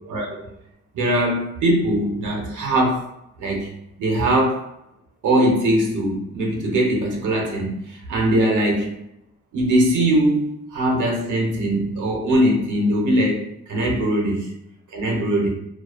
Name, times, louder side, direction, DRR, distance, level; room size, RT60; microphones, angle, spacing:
voice 1, 0.0-0.5 0.9-3.1 3.4-3.7 4.0-4.6 5.2-8.9 9.5-14.5 14.9-15.5, right 1 dB, 80° right, -1 dB, 0.7 m, -21 dB
2.4 x 2.3 x 2.3 m, 0.83 s
wide cardioid pair, 170°, 30 cm